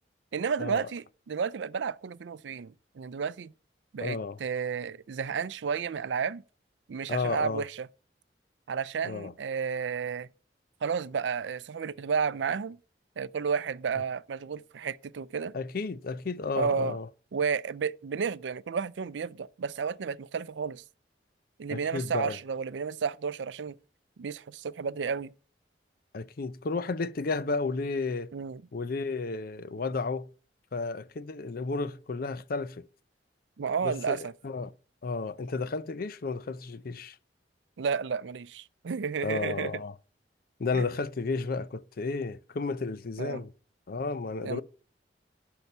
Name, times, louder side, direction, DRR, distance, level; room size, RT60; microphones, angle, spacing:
voice 1, 0.3-3.5 3.9-6.4 6.9-7.9 8.7-10.3 10.8-12.8 13.2-15.5 16.5-17.0 17.3-20.8 21.6-23.8 24.2-25.3 28.3-28.6 33.6-34.3 37.8-39.7 40.7-40.8 43.2-43.4 44.4-44.6, right 6 dB, 90° right, 0.4 m, -32 dB
voice 2, 4.0-4.4 7.1-7.6 9.0-9.3 15.5-17.1 21.7-22.4 26.1-28.3 28.7-30.3 30.7-32.8 33.8-34.7 35.0-37.2 39.2-39.9 40.6-43.5 43.9-44.6, left 4 dB, 55° left, 0.5 m, -32 dB
11.0 x 5.7 x 5.5 m
head